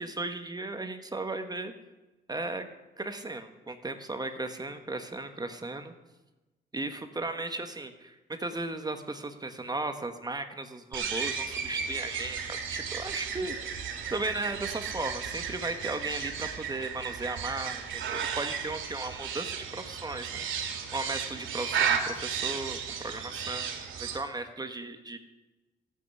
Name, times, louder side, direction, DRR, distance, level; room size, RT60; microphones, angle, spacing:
voice 1, 0.0-1.7 2.3-2.7 3.0-5.9 6.7-13.8 14.1-20.4 20.9-25.2, right 2 dB, 20° right, 7 dB, 1.4 m, -36 dB
sound 1, 10.9-24.2, right 7 dB, 80° right, 2.3 m, -34 dB
15.0 x 8.1 x 9.8 m, 1.1 s
cardioid pair, 90°, 20 cm